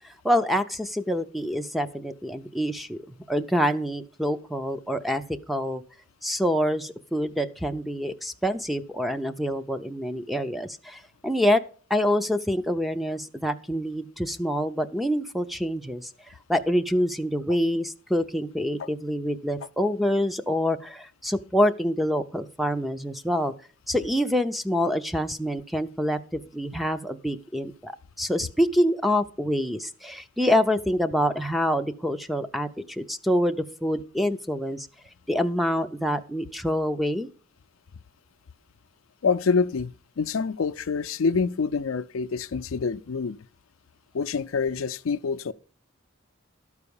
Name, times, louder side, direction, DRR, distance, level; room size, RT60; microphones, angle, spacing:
voice 1, 0.2-5.8 6.2-11.6 11.9-16.1 16.5-23.5 23.9-34.9 35.3-37.3, equal, ahead, 0.5 m, -26 dB
voice 2, 39.2-43.4 44.1-45.5, left 5 dB, 80° left, 0.5 m, -26 dB
12.5 x 4.8 x 7.0 m
head